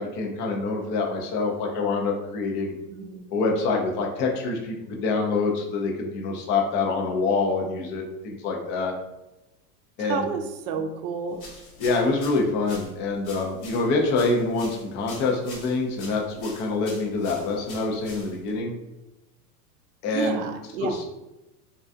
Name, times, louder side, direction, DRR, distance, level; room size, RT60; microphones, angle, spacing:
voice 1, 0.0-2.8 3.3-8.9 10.0-10.2 11.8-18.7 20.0-20.4 20.8-21.0, left 3 dB, 25° left, 0 dB, 0.3 m, -26 dB
voice 2, 10.0-11.4 20.1-20.9, right 5 dB, 60° right, 4 dB, 0.6 m, -30 dB
sound 1, 11.3-18.6, left 2 dB, 75° left, 1.2 m, -45 dB
2.3 x 2.3 x 2.5 m, 0.97 s
hypercardioid pair, 105°, 48 cm